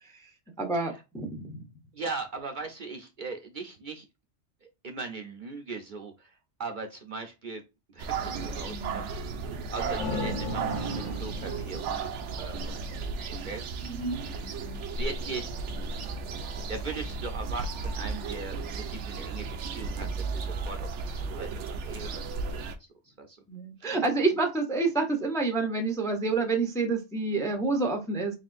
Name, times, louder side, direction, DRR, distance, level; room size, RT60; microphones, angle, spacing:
voice 1, 0.6-1.6 8.6-9.0 13.9-14.2 19.9-20.0 23.5-28.4, right 3 dB, 5° left, 5 dB, 0.5 m, -28 dB
voice 2, 1.9-4.0 4.8-6.3 6.6-7.6 7.9-9.2 9.7-14.1 14.9-15.5 16.7-22.7 23.2-23.4 23.8-24.0, right 4 dB, 50° right, 4 dB, 0.7 m, -39 dB
sound 1, 8.0-22.7, right 4 dB, 80° right, 0.9 m, -34 dB
sound 2, 9.5-13.1, left 1 dB, 40° left, 1.0 m, -36 dB
4.2 x 3.3 x 2.5 m, 0.26 s
omnidirectional pair, 1.2 m